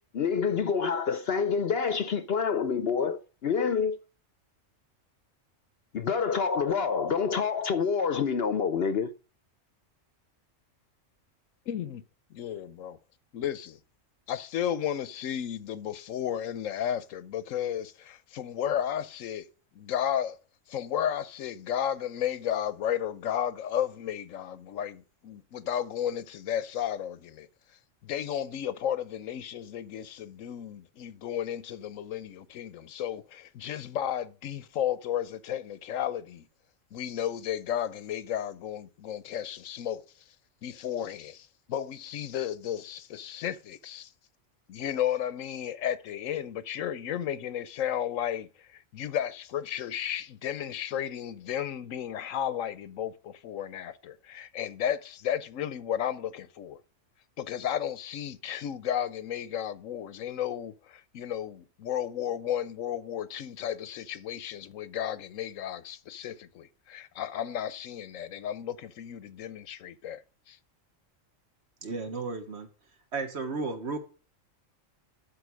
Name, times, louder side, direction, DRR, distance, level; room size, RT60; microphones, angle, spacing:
voice 1, 0.1-4.0 5.9-9.1, left 6 dB, 55° left, 0.9 m, -27 dB
voice 2, 11.7-12.0 12.3-13.0 13.3-13.8 14.3-19.5 19.7-20.4 20.7-27.5 28.0-36.4 36.9-40.0 40.6-44.1 44.7-56.8 57.4-70.6, left 10 dB, 85° left, 1.1 m, -33 dB
voice 3, 71.8-72.7 73.1-74.0, right 3 dB, 55° right, 1.7 m, -33 dB
12.0 x 4.4 x 6.2 m
omnidirectional pair, 1.3 m